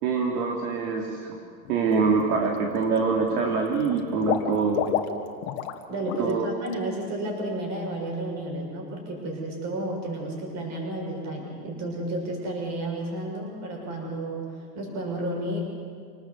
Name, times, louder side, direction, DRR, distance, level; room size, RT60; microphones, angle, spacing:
voice 1, 0.0-1.1 1.7-4.8 6.2-6.5, right 5 dB, 65° right, 0 dB, 3.6 m, -24 dB
Water / Liquid, 1.7-1.9 2.3-3.0 3.3-5.8 6.1-6.3 6.7-6.8, left 10 dB, 55° left, 2.2 m, -31 dB
voice 2, 5.9-15.6, right 1 dB, 35° right, 1 dB, 6.9 m, -32 dB
27.0 x 19.0 x 8.2 m, 2.2 s
supercardioid pair, 155°, 49 cm